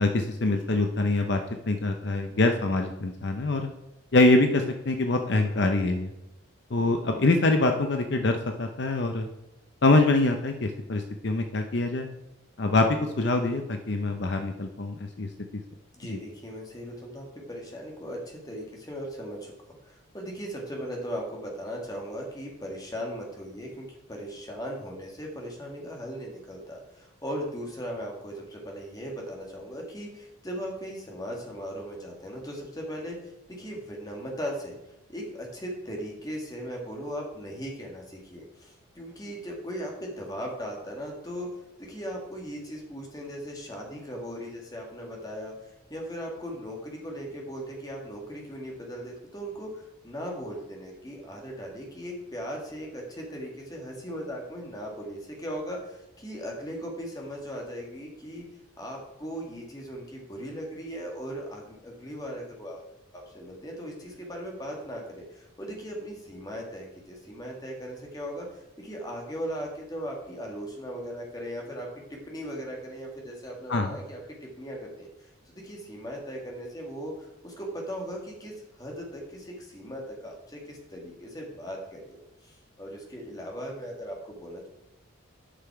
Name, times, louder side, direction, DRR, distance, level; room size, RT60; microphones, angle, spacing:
voice 1, 0.0-1.4 1.7-3.7 4.1-6.1 6.7-9.3 9.8-12.1 12.6-15.3 16.1-16.2 73.7-74.0, left 2 dB, 55° left, 5 dB, 0.7 m, -24 dB
voice 2, 5.3-5.7 15.9-19.5 19.8-34.8 35.1-58.4 58.8-62.9 63.3-84.7, equal, 20° left, -1 dB, 1.8 m, -38 dB
10.0 x 5.7 x 4.7 m, 0.91 s
head